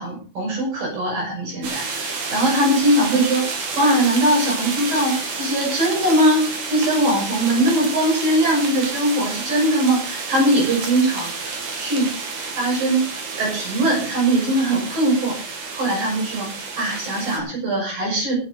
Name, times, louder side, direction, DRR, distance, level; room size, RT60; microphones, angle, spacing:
voice 1, 0.0-3.5 3.8-12.1 12.6-13.1 13.4-18.4, right 1 dB, 80° right, 0 dB, 8.2 m, -21 dB
sound 1, 1.6-17.4, right 4 dB, 60° right, 4.1 m, -30 dB
16.5 x 9.1 x 5.0 m, 0.38 s
omnidirectional pair, 3.9 m